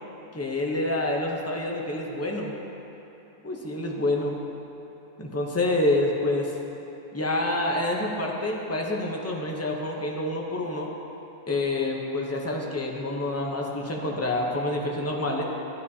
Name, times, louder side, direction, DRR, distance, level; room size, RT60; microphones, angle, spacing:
voice 1, 0.3-2.5 3.4-4.4 5.2-6.5 7.1-10.9 11.5-15.4, left 2 dB, 20° left, -1 dB, 0.5 m, -27 dB
12.0 x 10.0 x 2.8 m, 3.0 s
omnidirectional pair, 1.6 m